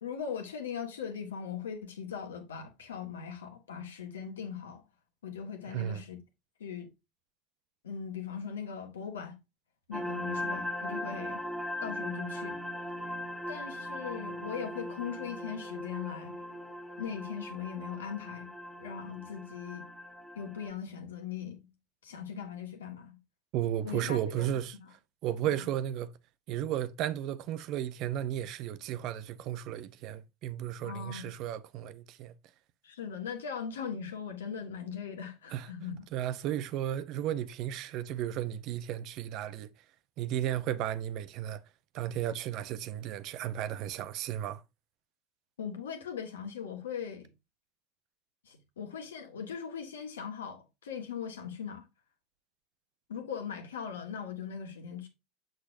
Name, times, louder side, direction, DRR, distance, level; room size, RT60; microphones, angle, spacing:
voice 1, 0.0-4.8 5.2-6.2 6.6-6.9 7.8-9.4 9.9-11.4 11.8-12.6 13.5-16.4 17.0-18.5 18.8-19.8 20.3-21.7 22.0-23.2 23.8-24.5 24.8-24.9 25.4-25.7 30.8-31.3 32.8-35.9 45.6-47.3 48.4-51.9 53.1-55.1, left 7 dB, 85° left, 1.6 m, -39 dB
voice 2, 5.7-6.0 23.5-24.8 25.2-26.1 26.5-32.3 35.5-35.7 36.1-39.7 40.2-41.6 41.9-44.6, right 11 dB, 55° right, 0.6 m, -34 dB
sound 1, 9.9-20.7, left 1 dB, 5° right, 1.3 m, -39 dB
6.9 x 6.5 x 2.7 m
hypercardioid pair, 85°, 0 cm